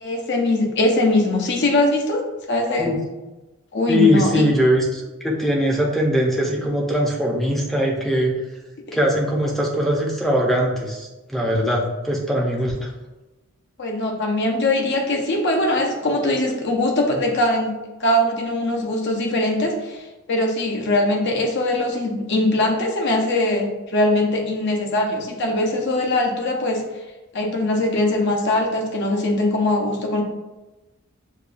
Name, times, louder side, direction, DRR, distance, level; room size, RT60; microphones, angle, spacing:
voice 1, 0.0-2.2 2.5-2.9 3.7-4.4 8.9-9.0 13.8-17.7 18.0-26.8 27.3-30.2, left 1 dB, 55° left, 1 dB, 0.6 m, -21 dB
voice 2, 3.9-8.3 8.9-12.9, equal, ahead, -2 dB, 0.6 m, -21 dB
6.7 x 2.3 x 2.4 m, 1.1 s
head